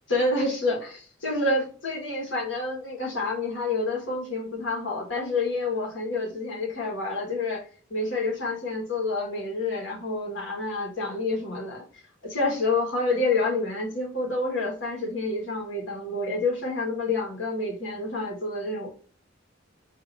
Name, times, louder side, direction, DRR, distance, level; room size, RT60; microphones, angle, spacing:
voice 1, 0.1-7.6 7.9-18.9, left 2 dB, 75° left, 1.5 m, -28 dB
4.5 x 2.8 x 2.6 m
head